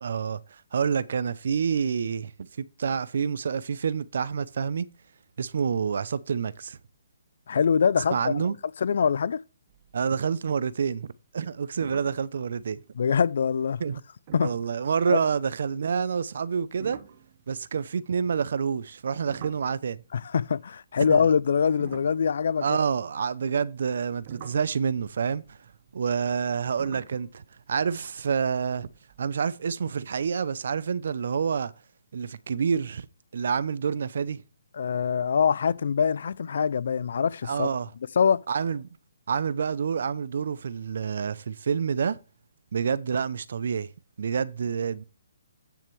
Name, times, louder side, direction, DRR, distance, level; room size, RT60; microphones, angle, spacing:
voice 1, 0.0-2.3 2.6-4.9 5.4-6.8 8.1-8.6 9.9-12.8 13.8-14.0 14.4-17.0 17.5-20.0 21.0-21.3 22.6-25.6 25.9-27.4 27.7-28.9 29.2-31.7 32.1-33.1 33.3-34.4 37.4-37.9 38.5-38.9 39.3-42.2 42.7-43.9 44.2-45.0, right 6 dB, 60° right, 0.7 m, -28 dB
voice 2, 7.5-8.5 8.8-9.4 13.0-13.8 14.3-14.5 15.1-15.2 20.1-22.8 34.7-37.7 38.2-38.4, left 6 dB, 60° left, 0.4 m, -24 dB
sound 1, 9.7-10.3 10.6-11.0 11.4-11.5 11.8-13.1 14.3-14.7 16.7-20.3 21.0-23.2 23.9-29.2, right 8 dB, 40° right, 1.2 m, -48 dB
9.2 x 7.4 x 3.3 m
hypercardioid pair, 145°, 0 cm